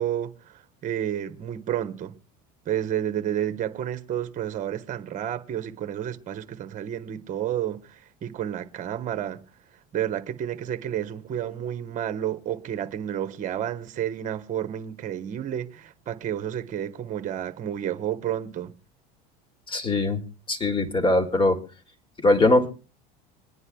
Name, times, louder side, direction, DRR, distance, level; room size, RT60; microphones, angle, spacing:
voice 1, 0.0-2.2 2.7-9.4 9.9-18.7, right 10 dB, 35° right, 1.1 m, -30 dB
voice 2, 19.7-20.2 20.5-21.6 22.2-22.7, left 2 dB, 25° left, 2.0 m, -21 dB
25.5 x 9.8 x 2.3 m
supercardioid pair, 115°, 21 cm